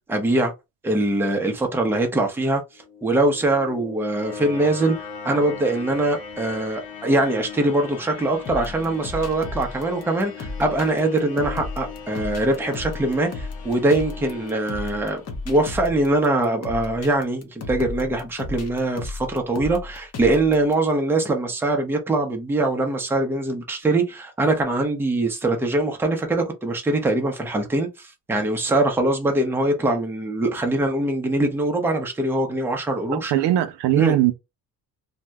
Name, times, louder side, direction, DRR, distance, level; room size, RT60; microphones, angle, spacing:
voice 1, 0.1-0.5 0.8-2.6 3.0-15.2 15.5-33.3 34.0-34.1, right 2 dB, 5° right, 0.5 m, -22 dB
sound 1, 2.7-15.8, left 6 dB, 80° left, 1.1 m, -39 dB
sound 2, 8.5-20.7, left 3 dB, 40° left, 0.7 m, -34 dB
voice 2, 33.1-34.3, right 13 dB, 85° right, 0.6 m, -20 dB
2.7 x 2.1 x 3.3 m
cardioid pair, 150°, 41 cm